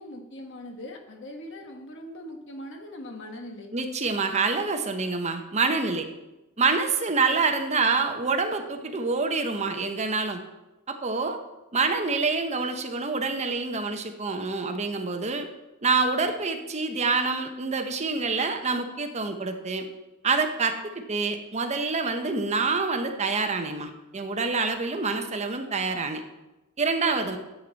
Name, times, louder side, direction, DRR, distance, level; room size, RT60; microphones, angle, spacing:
voice 1, 0.0-3.7, left 1 dB, 60° left, 4 dB, 1.3 m, -41 dB
voice 2, 3.7-6.1 6.6-10.4 10.9-11.4 11.7-15.5 15.8-19.9 20.2-26.2 26.8-27.4, right 4 dB, 35° right, 6 dB, 0.8 m, -26 dB
11.0 x 7.7 x 4.0 m, 1.0 s
head